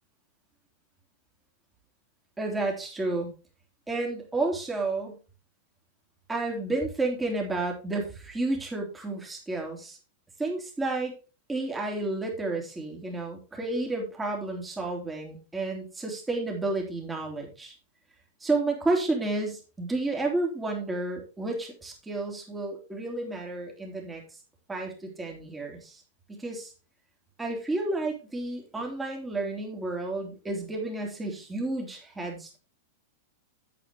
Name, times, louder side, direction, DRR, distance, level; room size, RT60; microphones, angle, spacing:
voice 1, 2.4-3.3 3.9-5.2 6.3-10.0 10.4-11.1 11.5-17.7 18.4-24.2 24.7-26.0 26.3-26.7 27.4-32.6, right 2 dB, 10° right, 0 dB, 3.3 m, -31 dB
9.1 x 8.5 x 3.6 m, 0.33 s
figure-of-eight pair, 95°, 0 cm